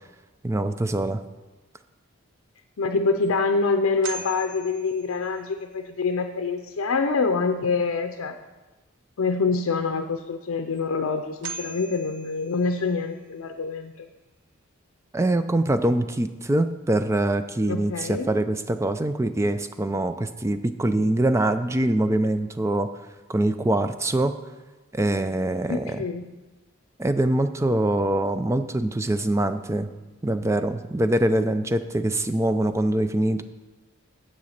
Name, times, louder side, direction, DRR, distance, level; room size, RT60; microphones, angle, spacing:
voice 1, 0.4-1.2 15.1-22.9 23.3-24.3 24.9-26.0 27.0-29.9 30.2-33.4, right 1 dB, 15° right, 10 dB, 0.3 m, -24 dB
sound 1, 2.6-2.7 3.2-3.3 4.0-5.7 10.7-10.8 11.4-13.1, right 3 dB, 60° right, 0.6 m, -39 dB
voice 2, 2.8-8.3 9.2-14.1 17.7-18.3 25.7-26.3, left 4 dB, 85° left, 6 dB, 0.5 m, -26 dB
7.6 x 7.0 x 6.5 m, 1.2 s
head